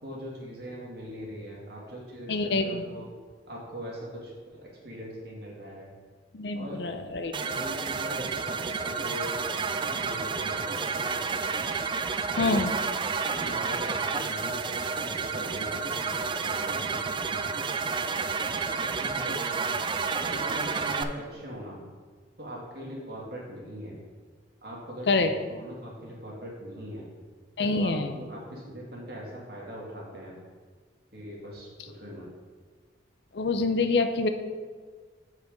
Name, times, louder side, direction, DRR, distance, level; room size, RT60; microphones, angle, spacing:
voice 1, 0.0-3.1 3.5-5.9 6.5-6.8 7.4-11.5 12.3-12.7 13.2-18.3 18.7-19.8 20.2-21.8 22.4-24.0 24.6-27.1 27.6-30.4 31.1-32.3, equal, 60° right, -3 dB, 2.1 m, -41 dB
voice 2, 2.3-2.8 6.3-7.3 12.4-12.7 25.1-25.3 27.6-28.2 33.3-34.3, left 3 dB, 60° left, 8 dB, 0.6 m, -26 dB
sound 1, 7.3-21.0, right 5 dB, 25° right, 0.3 m, -30 dB
8.0 x 4.8 x 5.1 m, 1.5 s
head